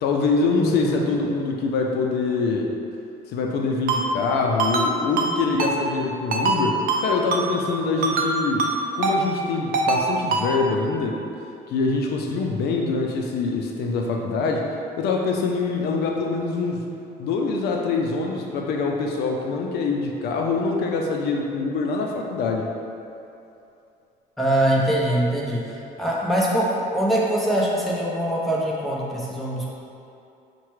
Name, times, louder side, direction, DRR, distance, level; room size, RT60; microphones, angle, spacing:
voice 1, 0.0-2.7 3.3-8.7 8.9-11.2 11.7-14.7 15.0-16.8 17.2-22.7, left 4 dB, 70° left, 1 dB, 0.4 m, -24 dB
voice 2, 0.6-1.1 24.4-29.7, right 1 dB, ahead, -5 dB, 0.7 m, -23 dB
Ringtone, 3.9-4.0 4.6-4.9 5.2-5.3 5.6-5.7 6.3-6.6 6.9-7.0 7.3-7.4 8.0-8.3 8.6-8.7 9.0-9.2 9.7-10.0 10.3-10.4, right 4 dB, 55° right, 0.5 m, -22 dB
5.6 x 2.2 x 3.1 m, 2.7 s
cardioid pair, 110°, 17 cm